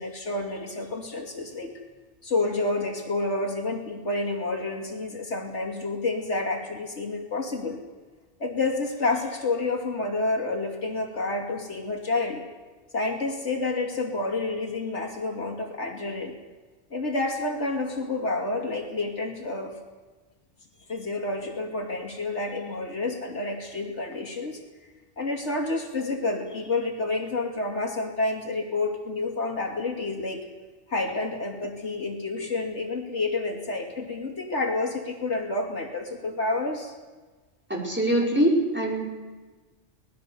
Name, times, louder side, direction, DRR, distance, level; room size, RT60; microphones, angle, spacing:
voice 1, 0.0-1.7 2.2-7.8 8.4-12.5 12.9-16.3 16.9-19.8 20.9-24.6 25.2-30.5 30.9-36.9, left 2 dB, 75° left, 2 dB, 3.0 m, -29 dB
voice 2, 37.7-39.0, right 1 dB, 10° right, -2 dB, 4.7 m, -23 dB
25.0 x 19.0 x 6.9 m, 1.3 s
omnidirectional pair, 1.2 m